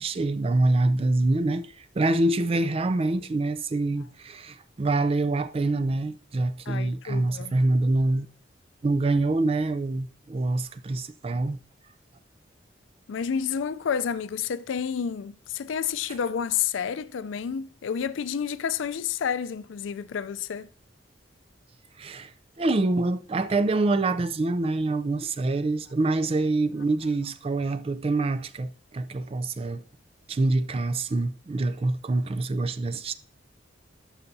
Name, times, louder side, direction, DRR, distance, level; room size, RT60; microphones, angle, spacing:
voice 1, 0.0-8.3 8.8-11.6 22.0-22.3 22.6-29.8 30.3-33.1, right 2 dB, 30° right, 0.4 m, -25 dB
voice 2, 6.7-7.6 13.1-20.7, left 7 dB, 90° left, 0.4 m, -30 dB
12.0 x 5.7 x 2.7 m
head